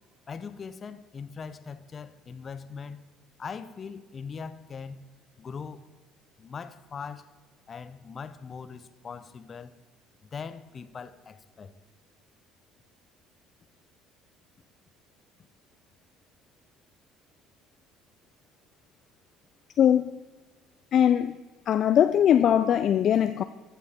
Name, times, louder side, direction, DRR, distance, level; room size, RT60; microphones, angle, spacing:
voice 1, 0.3-3.0 3.4-5.0 5.4-5.9 6.4-7.3 7.7-9.7 10.2-11.7, left 5 dB, 40° left, 0.7 m, -40 dB
voice 2, 19.8-20.1 20.9-21.3 21.7-23.4, left 9 dB, 55° left, 0.3 m, -21 dB
14.5 x 5.5 x 4.3 m
hypercardioid pair, 70°, 0 cm